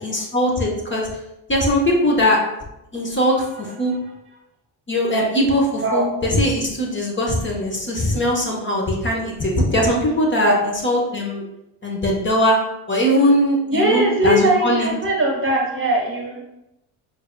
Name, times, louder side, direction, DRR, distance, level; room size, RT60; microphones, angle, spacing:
voice 1, 0.0-1.1 1.5-2.4 2.9-3.9 4.9-11.4 11.8-12.6 12.9-14.9, equal, 25° left, -1 dB, 1.0 m, -20 dB
voice 2, 13.7-16.4, right 1 dB, 25° right, 0 dB, 1.1 m, -20 dB
6.3 x 2.6 x 2.2 m, 0.90 s
hypercardioid pair, 65°, 46 cm